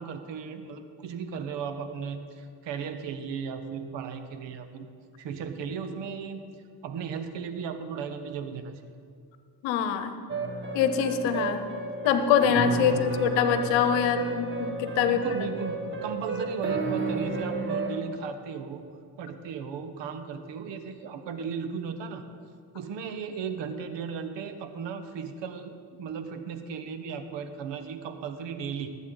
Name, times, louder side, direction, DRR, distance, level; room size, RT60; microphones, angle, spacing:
voice 1, 0.0-4.9 5.2-6.4 6.8-8.8 12.8-13.1 15.0-18.8 19.2-22.2 22.7-28.9, right 6 dB, 75° right, 9 dB, 1.1 m, -36 dB
voice 2, 9.6-10.2 10.7-11.6 12.0-15.2, left 8 dB, 90° left, 10 dB, 0.9 m, -24 dB
sound 1, 10.3-18.0, right 3 dB, 25° right, 1.8 m, -31 dB
19.0 x 8.4 x 3.9 m, 2.2 s
supercardioid pair, 65°, 44 cm